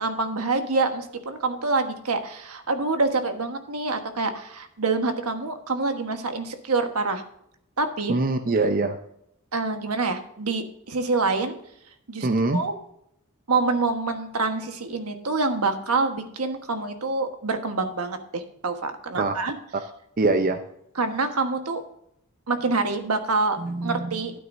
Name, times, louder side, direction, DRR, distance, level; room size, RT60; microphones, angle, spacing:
voice 1, 0.0-7.2 7.8-8.2 9.5-11.6 12.1-12.7 13.5-19.5 21.0-21.8 22.5-24.3, right 3 dB, 80° right, 7 dB, 1.3 m, -26 dB
voice 2, 8.1-9.0 12.2-12.6 19.2-19.3 20.2-20.6 23.6-24.1, right 3 dB, 40° right, 8 dB, 0.6 m, -23 dB
12.0 x 9.4 x 2.6 m, 0.73 s
head